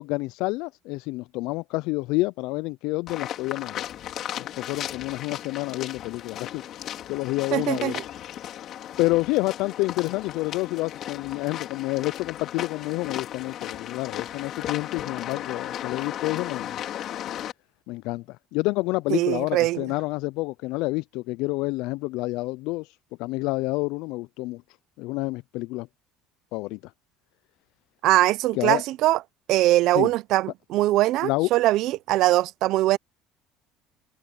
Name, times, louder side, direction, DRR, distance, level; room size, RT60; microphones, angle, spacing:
voice 1, 0.0-3.8 4.4-6.6 7.1-8.0 8.6-8.7 9.0-16.8 17.9-24.6 25.0-25.9 26.5-26.9 28.5-28.8 29.9-30.1 31.2-31.5, left 22 dB, 75° left, 0.3 m, -28 dB
sound 1, 3.1-17.5, left 11 dB, 50° left, 4.2 m, -35 dB
voice 2, 7.5-8.0 19.1-19.8 28.0-29.2 29.5-33.0, right 16 dB, 60° right, 0.6 m, -22 dB
cardioid pair, 135°, 0 cm